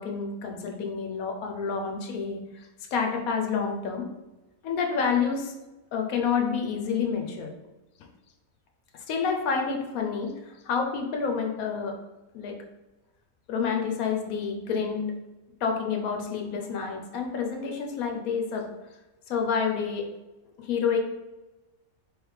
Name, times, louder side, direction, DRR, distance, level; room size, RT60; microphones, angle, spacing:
voice 1, 0.0-4.1 4.6-5.5 5.9-7.5 9.1-12.0 12.3-12.6 13.5-15.1 15.6-18.7 19.3-20.1 20.6-21.0, left 6 dB, 75° left, 3 dB, 1.1 m, -28 dB
3.6 x 3.4 x 3.1 m, 1.1 s
omnidirectional pair, 1.5 m